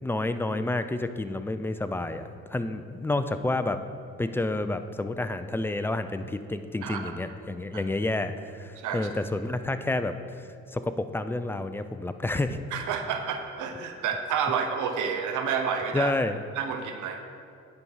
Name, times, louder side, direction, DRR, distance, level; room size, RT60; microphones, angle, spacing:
voice 1, 0.0-3.8 4.2-10.4 10.7-12.6 15.9-16.4, left 2 dB, 10° left, 9 dB, 0.4 m, -29 dB
voice 2, 6.8-7.1 7.7-7.8 8.8-9.1 12.7-16.1 16.6-17.2, right 6 dB, 85° right, 6 dB, 0.8 m, -30 dB
9.6 x 4.7 x 5.5 m, 2.3 s
cardioid pair, 90°, 30 cm